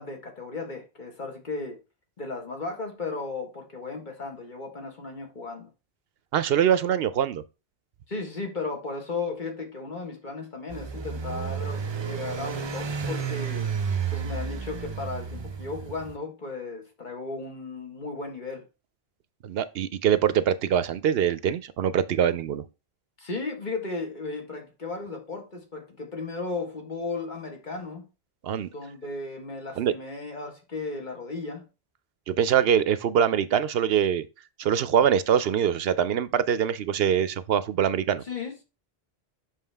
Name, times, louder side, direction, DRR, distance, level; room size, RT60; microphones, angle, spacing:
voice 1, 0.0-1.8 2.2-5.7 8.1-13.7 14.1-18.6 23.2-28.0 28.7-31.6 38.2-38.6, left 3 dB, 50° left, 1.6 m, -35 dB
voice 2, 6.3-7.4 19.4-22.6 28.4-28.7 29.8-29.9 32.3-34.3 34.6-38.2, right 9 dB, 70° right, 0.8 m, -23 dB
sound 1, 10.7-16.2, right 6 dB, 40° right, 0.4 m, -31 dB
7.4 x 5.9 x 3.4 m
omnidirectional pair, 1.1 m